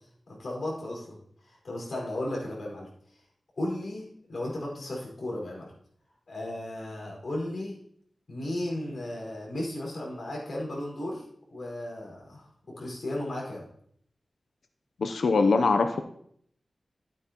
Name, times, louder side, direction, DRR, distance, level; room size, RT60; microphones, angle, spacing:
voice 1, 0.3-1.2 1.5-2.9 3.6-5.7 6.3-7.8 8.3-11.2 11.5-13.7, left 1 dB, 60° left, -2 dB, 4.8 m, -35 dB
voice 2, 15.0-16.0, left 4 dB, 80° left, 7 dB, 0.6 m, -22 dB
12.5 x 9.1 x 2.9 m, 0.66 s
wide cardioid pair, 120°, 0 cm